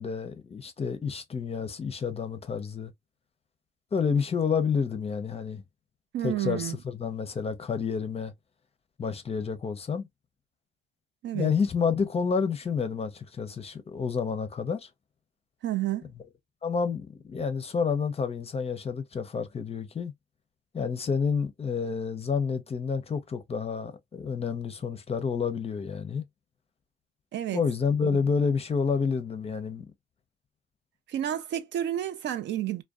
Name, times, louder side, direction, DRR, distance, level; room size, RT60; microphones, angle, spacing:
voice 1, 0.0-2.9 3.9-5.6 6.2-8.3 9.0-10.1 11.3-14.9 16.6-20.1 20.7-26.2 27.5-29.8, left 5 dB, 30° left, 0.5 m, -29 dB
voice 2, 6.1-6.8 11.2-11.5 15.6-16.0 27.3-27.6 28.1-28.2 31.1-32.8, right 12 dB, 65° right, 0.4 m, -30 dB
2.5 x 2.1 x 2.3 m
cardioid pair, 90°, 20 cm